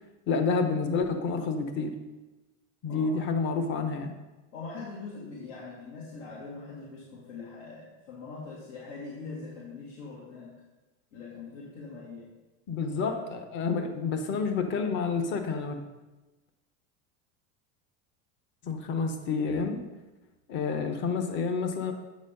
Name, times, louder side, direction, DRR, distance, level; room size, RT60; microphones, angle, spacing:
voice 1, 0.3-2.0 2.8-4.1 12.7-15.8 18.6-19.8 20.5-21.9, left 4 dB, 35° left, 6 dB, 0.9 m, -29 dB
voice 2, 4.5-10.5 11.1-12.3 13.0-13.1, left 4 dB, 80° left, -7 dB, 2.4 m, -42 dB
8.4 x 4.2 x 5.3 m, 1.1 s
supercardioid pair, 155°, 35 cm